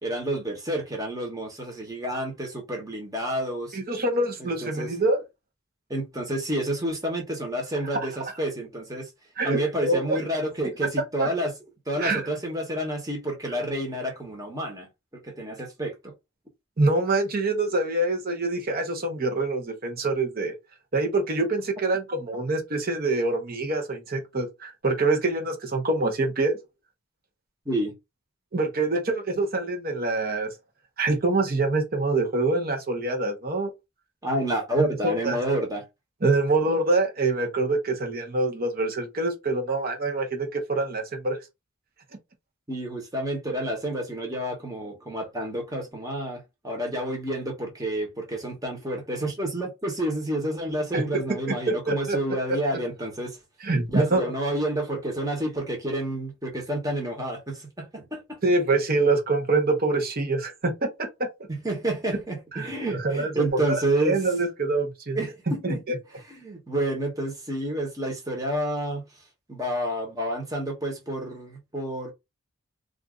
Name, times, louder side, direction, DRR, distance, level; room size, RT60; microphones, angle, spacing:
voice 1, 0.0-3.8 4.4-4.9 5.9-9.1 9.4-11.5 11.9-16.1 27.6-27.9 34.2-35.8 42.7-53.4 53.9-58.4 61.5-64.2 65.1-65.8 66.3-69.0 69.5-72.1, right 1 dB, 15° right, 1.0 m, -29 dB
voice 2, 3.7-5.2 8.2-8.3 9.4-10.2 11.2-11.3 12.0-12.2 16.8-20.5 20.9-26.6 28.5-30.5 31.0-33.7 34.8-35.4 36.2-41.4 50.9-51.2 51.5-52.2 53.6-54.2 58.4-61.1 62.5-65.2 65.6-66.0, right 2 dB, 45° right, 0.9 m, -25 dB
2.6 x 2.5 x 3.6 m
head